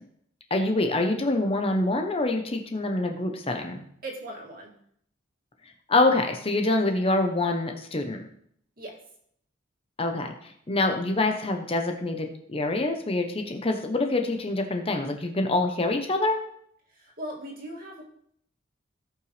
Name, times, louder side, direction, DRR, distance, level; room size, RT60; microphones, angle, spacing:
voice 1, 0.5-3.8 5.9-8.3 10.0-16.4, left 2 dB, 30° left, 4 dB, 0.8 m, -26 dB
voice 2, 4.0-4.7 8.8-9.0 16.9-18.0, right 1 dB, 45° right, -2 dB, 2.4 m, -38 dB
17.5 x 5.8 x 3.3 m, 0.70 s
head